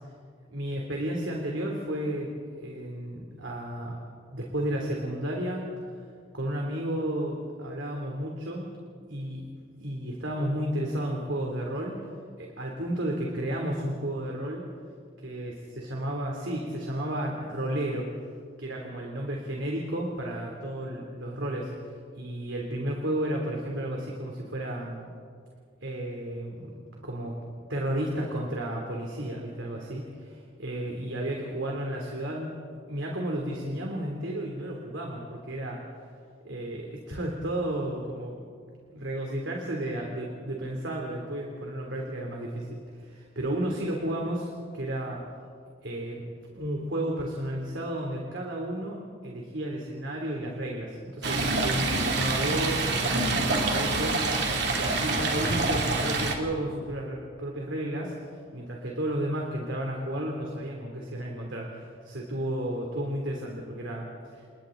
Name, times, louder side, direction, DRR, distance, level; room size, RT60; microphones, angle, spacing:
voice 1, 0.5-4.0 4.3-5.9 6.3-8.7 9.1-9.4 9.8-12.0 12.4-14.7 15.2-18.1 18.6-21.7 22.1-25.1 25.8-26.7 27.0-27.4 27.7-32.6 32.9-35.8 36.4-38.5 38.9-45.2 45.8-46.2 46.5-64.5, right 1 dB, 75° right, -1 dB, 3.1 m, -32 dB
Stream, 51.2-56.3, right 3 dB, 55° right, 2.8 m, -26 dB
29.5 x 29.5 x 3.9 m, 2.2 s
head